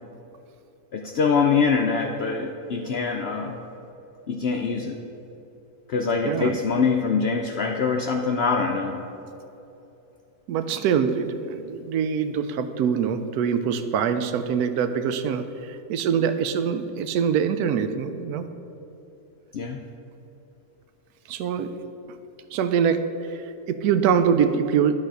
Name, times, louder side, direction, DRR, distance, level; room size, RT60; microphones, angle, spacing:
voice 1, 0.9-3.6 4.3-5.0 5.9-9.0 19.5-19.8, left 5 dB, 65° left, 3 dB, 0.6 m, -24 dB
voice 2, 6.3-6.6 10.5-18.5 21.3-21.7 22.5-24.9, right 7 dB, 85° right, 10 dB, 1.1 m, -24 dB
11.5 x 4.0 x 6.4 m, 2.9 s
omnidirectional pair, 1.6 m